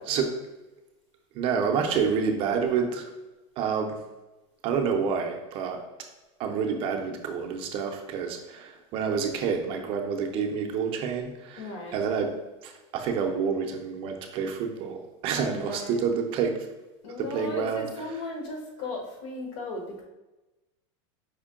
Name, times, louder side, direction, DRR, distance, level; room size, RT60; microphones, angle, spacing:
voice 1, 1.3-3.1 3.6-4.0 4.6-5.8 6.4-12.3 12.6-16.6 17.2-18.2, right 6 dB, 35° right, 3 dB, 0.5 m, -28 dB
voice 2, 11.6-12.0 15.4-16.0 17.0-20.0, left 2 dB, 70° left, 1 dB, 1.1 m, -36 dB
5.0 x 2.1 x 3.6 m, 1.1 s
supercardioid pair, 150°, 15 cm